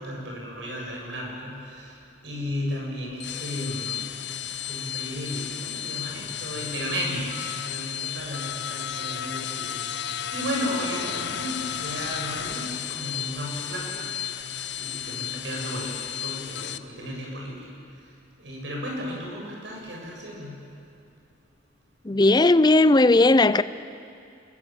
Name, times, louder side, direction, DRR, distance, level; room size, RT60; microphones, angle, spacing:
voice 1, 0.0-2.0 2.2-4.1 4.6-17.7 18.0-18.1 18.4-20.6, equal, 75° right, 7.5 m, -34 dB
sound 1, 3.1-16.8, left 9 dB, 65° left, 0.7 m, -33 dB
voice 2, 22.0-23.6, left 2 dB, 20° left, 0.5 m, -17 dB
27.5 x 21.5 x 7.6 m
head